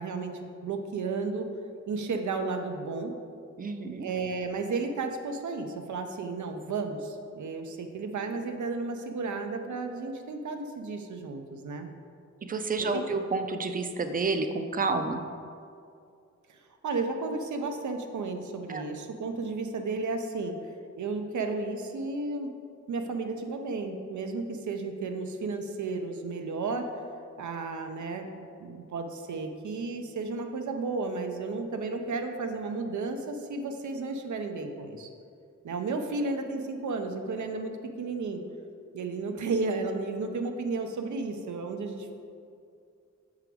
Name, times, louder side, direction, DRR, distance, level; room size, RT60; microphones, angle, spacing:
voice 1, 0.0-1.5 1.9-3.1 4.0-11.9 12.8-13.0 16.5-22.5 22.9-26.9 27.4-35.1 35.6-38.4 38.9-42.1, right 3 dB, 85° right, 5 dB, 0.6 m, -33 dB
voice 2, 3.6-4.1 12.5-15.2 18.7-18.8, right 3 dB, 30° right, 7 dB, 0.4 m, -29 dB
5.8 x 3.8 x 4.5 m, 2.4 s
cardioid pair, 70°, 29 cm